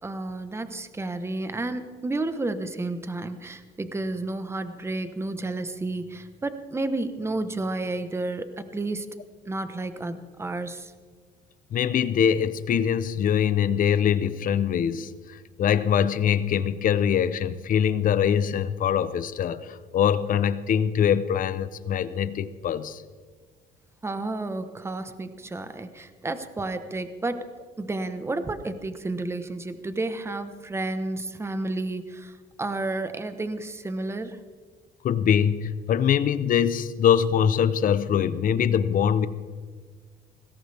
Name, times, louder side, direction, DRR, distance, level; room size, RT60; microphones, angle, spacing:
voice 1, 0.0-9.1 9.5-10.9 24.0-27.5 27.8-34.4, right 2 dB, 15° right, 10 dB, 1.2 m, -31 dB
voice 2, 11.7-23.0 35.0-39.3, left 8 dB, 55° left, 14 dB, 0.9 m, -23 dB
21.0 x 16.5 x 3.5 m, 1.5 s
cardioid pair, 110°, 17 cm